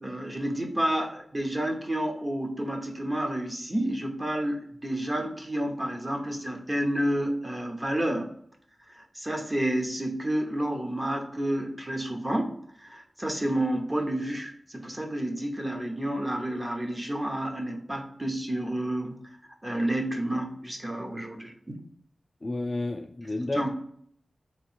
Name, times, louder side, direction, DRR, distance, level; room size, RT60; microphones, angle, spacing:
voice 1, 0.0-8.3 9.1-12.5 12.8-19.2 19.6-21.5 23.5-23.7, right 1 dB, 20° right, 3 dB, 0.8 m, -30 dB
voice 2, 22.4-23.7, left 2 dB, 30° left, 2 dB, 0.4 m, -31 dB
3.9 x 3.0 x 4.4 m, 0.63 s
wide cardioid pair, 100°, 0 cm